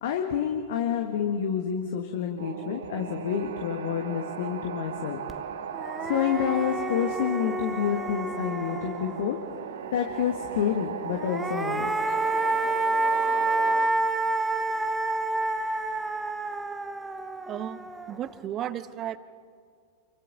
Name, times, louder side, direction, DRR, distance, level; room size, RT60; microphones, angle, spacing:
voice 1, 0.0-5.2 6.0-9.4 9.9-11.9, left 8 dB, 55° left, 4 dB, 1.5 m, -28 dB
sound 1, 2.4-13.9, right 8 dB, 60° right, 1.2 m, -37 dB
sound 2, 5.3-5.4 5.7-9.4 11.0-18.3, right 2 dB, 10° right, 1.0 m, -29 dB
voice 2, 17.5-19.2, right 11 dB, 30° right, 16 dB, 0.9 m, -34 dB
28.5 x 24.0 x 4.0 m, 2.2 s
figure-of-eight pair, 90°, 0 cm